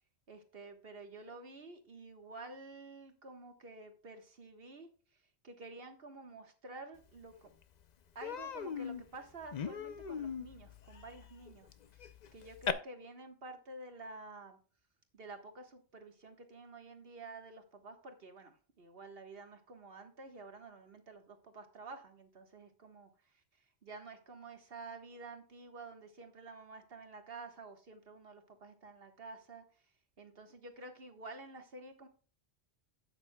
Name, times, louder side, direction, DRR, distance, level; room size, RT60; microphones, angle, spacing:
voice 1, 0.3-4.9 5.4-7.5 8.1-14.6 15.1-23.1 23.8-29.6 30.2-32.1, right 3 dB, 60° right, 6 dB, 1.6 m, -50 dB
Human voice, 7.2-7.3 7.6-7.8 8.2-12.7, left 7 dB, 50° left, 0.6 m, -40 dB
12.0 x 8.7 x 2.2 m, 0.39 s
omnidirectional pair, 1.1 m